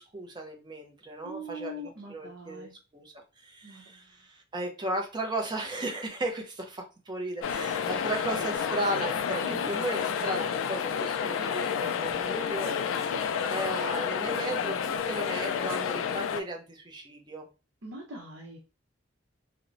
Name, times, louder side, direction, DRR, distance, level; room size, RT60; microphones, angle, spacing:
voice 1, 0.0-2.7 2.9-3.1 3.4-13.0 13.3-17.5, right 1 dB, 25° right, 3 dB, 0.5 m, -35 dB
voice 2, 1.2-2.7 3.6-4.3 9.4-9.7 12.9-13.2 17.8-18.6, equal, 70° right, -3 dB, 0.7 m, -42 dB
sound 1, 7.4-16.4, left 7 dB, 85° left, 0.3 m, -30 dB
2.8 x 2.0 x 2.5 m, 0.31 s
head